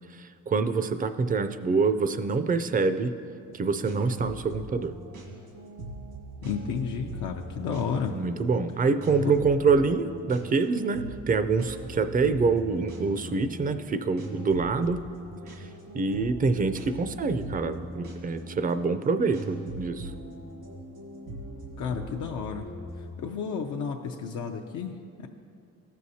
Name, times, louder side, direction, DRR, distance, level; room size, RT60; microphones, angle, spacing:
voice 1, 0.1-3.1 3.5-4.9 8.1-15.0 15.6-15.7 15.9-20.1, right 4 dB, 30° right, 10 dB, 0.4 m, -26 dB
sound 1, 3.4-23.1, right 1 dB, 85° right, 1.7 m, -41 dB
voice 2, 6.4-8.2 9.2-9.3 21.8-22.7 23.2-25.3, left 6 dB, 75° left, 1 dB, 0.6 m, -32 dB
15.0 x 6.4 x 2.8 m, 2.5 s
cardioid pair, 90°, 30 cm